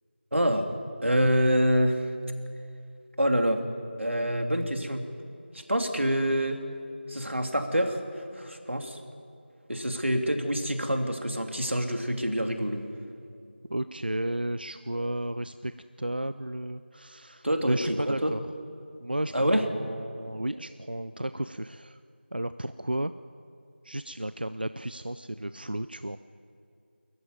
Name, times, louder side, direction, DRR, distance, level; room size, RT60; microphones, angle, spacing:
voice 1, 0.3-0.7 1.0-2.1 3.2-3.6 4.0-5.0 5.5-6.6 7.1-9.0 9.7-12.9 17.4-17.8 18.1-18.3 19.3-19.6, equal, 90° right, 4 dB, 2.9 m, -26 dB
voice 2, 13.7-15.7 16.0-18.4 19.0-22.0 22.3-23.1 23.8-26.2, right 1 dB, 50° right, 12 dB, 0.5 m, -33 dB
24.5 x 14.5 x 9.5 m, 2.5 s
figure-of-eight pair, 180°, 6 cm